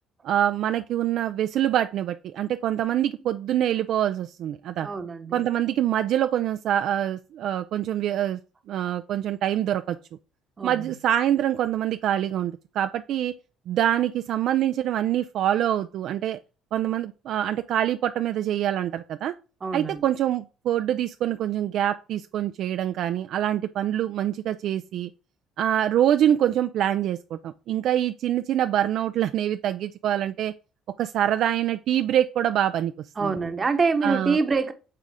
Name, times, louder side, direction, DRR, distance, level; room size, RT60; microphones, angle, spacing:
voice 1, 0.2-4.9 5.3-8.4 8.7-10.0 10.6-13.3 13.7-16.4 16.7-19.3 19.7-25.1 25.6-30.5 31.0-32.9 33.2-33.3 34.0-34.4, right 11 dB, 65° right, 0.3 m, -25 dB
voice 2, 4.8-5.4 10.6-10.9 19.6-20.0 33.2-34.7, right 4 dB, 30° right, 0.9 m, -25 dB
7.4 x 3.8 x 3.6 m
supercardioid pair, 90°, 0 cm